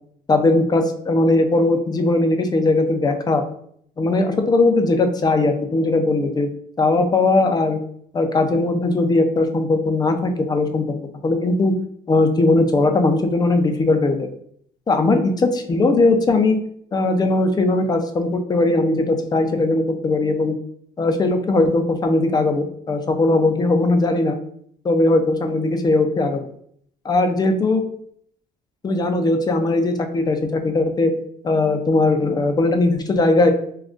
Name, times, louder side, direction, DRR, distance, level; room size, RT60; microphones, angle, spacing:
voice 1, 0.3-3.4 4.0-6.5 6.8-7.8 8.1-11.0 11.2-11.7 12.1-14.3 14.9-16.6 16.9-20.5 21.0-24.4 24.8-26.4 27.0-27.8 28.8-31.1 31.4-33.5, left 2 dB, 25° left, 6 dB, 0.4 m, -19 dB
2.5 x 2.3 x 3.5 m, 0.65 s
cardioid pair, 110°, 17 cm